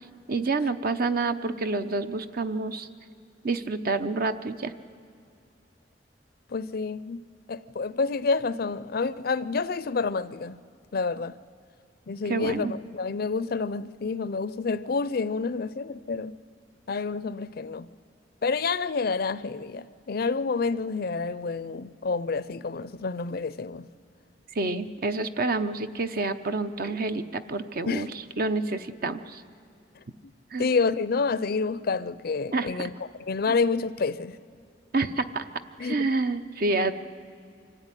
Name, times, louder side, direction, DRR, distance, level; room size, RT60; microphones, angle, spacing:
voice 1, 0.3-2.9 3.4-4.7 12.3-12.7 24.5-28.1 28.4-29.4 30.5-30.7 32.5-32.7 33.5-33.6 34.9-35.5 35.8-36.9, right 3 dB, 55° right, 0.8 m, -28 dB
voice 2, 6.5-7.2 7.5-10.6 10.9-11.4 12.1-16.3 16.9-17.9 18.4-23.9 27.9-28.1 30.6-32.9 33.3-34.4 35.8-36.1, left 4 dB, 55° left, 0.5 m, -28 dB
24.0 x 14.5 x 9.8 m
head